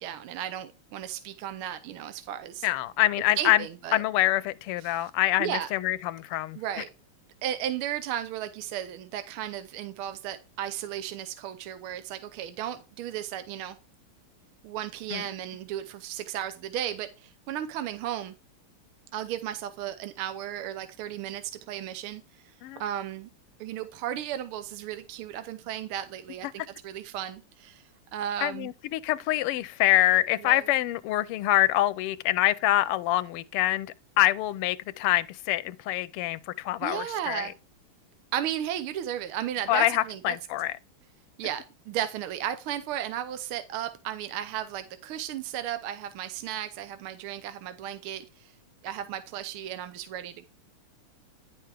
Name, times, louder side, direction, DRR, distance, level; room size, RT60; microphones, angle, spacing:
voice 1, 0.0-2.7 3.4-4.0 4.8-5.1 5.4-5.7 6.5-6.9 7.4-13.8 14.6-18.3 19.1-22.5 22.8-23.3 23.6-28.7 30.4-30.6 36.8-37.5 38.3-40.3 41.4-48.5 48.8-50.5, right 11 dB, 75° right, 1.6 m, -34 dB
voice 2, 2.6-3.6 3.9-6.6 15.1-15.2 22.6-22.8 28.4-37.5 39.7-40.7, left 15 dB, 90° left, 1.5 m, -25 dB
10.5 x 5.6 x 3.4 m
omnidirectional pair, 2.4 m